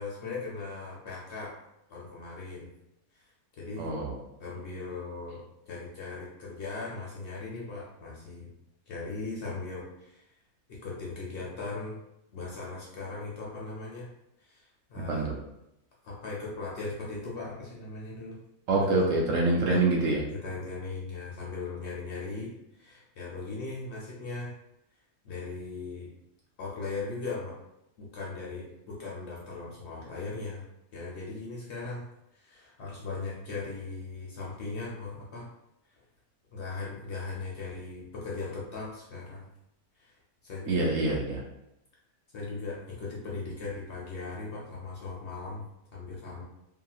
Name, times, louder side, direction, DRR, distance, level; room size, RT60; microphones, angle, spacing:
voice 1, 0.0-1.6 1.9-2.7 3.1-3.2 3.6-3.9 4.4-8.5 8.9-10.2 10.7-12.0 12.3-14.1 14.4-15.3 16.0-18.4 18.7-18.9 19.7-19.9 20.3-24.5 25.2-26.1 26.6-27.6 28.0-30.6 30.9-32.1 32.3-35.5 36.5-39.5 40.0-40.1 40.4-40.9 42.3-45.6 45.9-46.4, left 3 dB, 60° left, -5 dB, 0.8 m, -38 dB
voice 2, 3.8-4.2 15.1-15.3 18.7-20.2 40.7-41.4, right 2 dB, 65° right, -1 dB, 0.9 m, -25 dB
2.8 x 2.8 x 2.3 m, 0.85 s
omnidirectional pair, 1.6 m